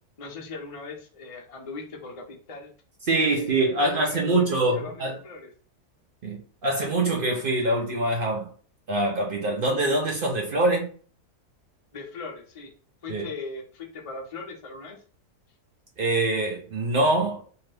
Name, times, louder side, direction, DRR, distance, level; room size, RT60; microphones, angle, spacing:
voice 1, 0.2-2.7 3.2-4.4 4.7-5.5 11.9-12.7 13.0-15.0, left 4 dB, 55° left, 0.3 m, -39 dB
voice 2, 3.1-5.2 6.2-8.5 8.9-10.9 13.1-13.2 16.0-17.4, right 2 dB, 70° right, 0.5 m, -24 dB
2.7 x 2.4 x 3.2 m
omnidirectional pair, 1.7 m